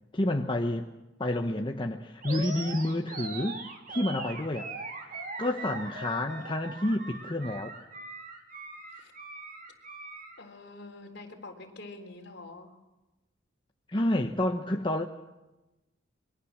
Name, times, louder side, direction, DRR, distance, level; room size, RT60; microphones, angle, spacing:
voice 1, 0.1-0.9 1.2-3.6 3.9-4.7 5.4-7.7 13.9-15.0, left 1 dB, 25° left, 3 dB, 1.1 m, -29 dB
Animal, 2.2-10.4, right 3 dB, 45° right, 2.8 m, -41 dB
voice 2, 10.4-12.7, left 2 dB, 55° left, 4 dB, 3.7 m, -46 dB
27.5 x 22.5 x 7.4 m, 1.1 s
head